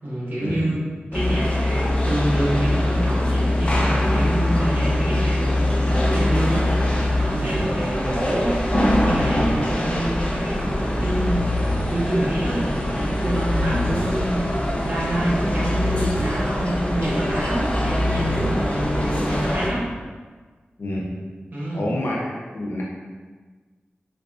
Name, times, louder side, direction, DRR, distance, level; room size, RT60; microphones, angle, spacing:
voice 1, 0.0-0.8 1.1-6.7 7.1-8.6 9.0-11.6 11.9-14.5 14.8-19.9 21.5-21.8, right 1 dB, 55° right, -9 dB, 1.4 m, -27 dB
sound 1, 1.1-19.7, left 1 dB, 30° left, 0.6 m, -23 dB
voice 2, 20.8-21.1 21.7-22.2 22.5-22.8, left 1 dB, 80° left, -4 dB, 0.7 m, -28 dB
4.0 x 2.5 x 2.4 m, 1.4 s
cardioid pair, 45°, 4 cm